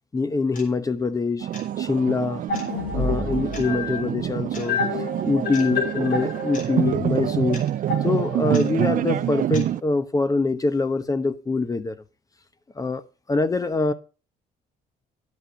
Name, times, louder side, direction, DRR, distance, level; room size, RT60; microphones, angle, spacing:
voice 1, 0.1-1.5 1.8-2.4 2.9-4.8 5.2-7.6 8.0-12.0 12.8-13.0 13.3-13.9, left 3 dB, 20° left, 0.9 m, -24 dB
sound 1, 0.5-0.7 1.5-1.7 2.5-2.7 3.5-3.7 4.5-4.7 5.5-5.7 6.5-6.7 7.5-7.7 8.5-8.7 9.5-9.7, left 4 dB, 50° left, 3.9 m, -40 dB
sound 2, 1.4-9.8, right 11 dB, 55° right, 0.6 m, -26 dB
sound 3, 2.5-8.7, left 4 dB, 70° left, 5.4 m, -29 dB
11.5 x 8.1 x 5.1 m
cardioid pair, 110°, 17 cm